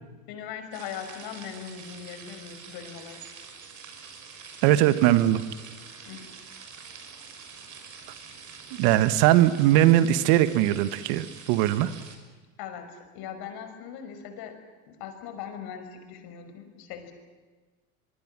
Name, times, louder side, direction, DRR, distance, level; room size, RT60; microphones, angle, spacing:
voice 1, 0.3-3.2 6.1-6.3 12.6-14.6 14.9-17.1, left 8 dB, 60° left, 7 dB, 5.9 m, -40 dB
sound 1, 0.7-12.2, right 6 dB, 40° right, 6.2 m, -46 dB
voice 2, 4.6-5.4 8.8-11.9, right 13 dB, 65° right, 13 dB, 1.7 m, -20 dB
24.5 x 23.5 x 7.6 m, 1.3 s
hypercardioid pair, 85°, 43 cm